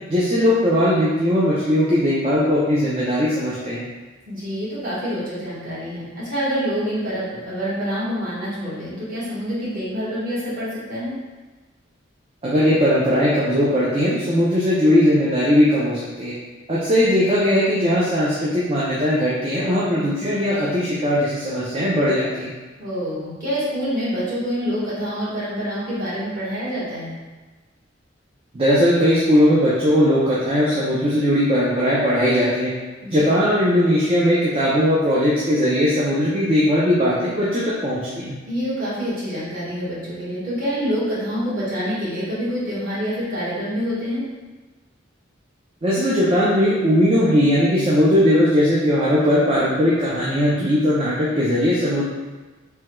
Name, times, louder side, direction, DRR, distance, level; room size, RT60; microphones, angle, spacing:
voice 1, 0.1-3.8 12.4-16.3 16.7-22.5 28.5-32.7 33.1-38.3 45.8-52.1, equal, 30° right, -8 dB, 0.4 m, -19 dB
voice 2, 4.3-11.1 19.9-20.2 22.8-27.1 33.0-33.3 38.4-44.2, equal, 50° right, -10 dB, 1.2 m, -26 dB
3.4 x 2.2 x 2.9 m, 1.3 s
head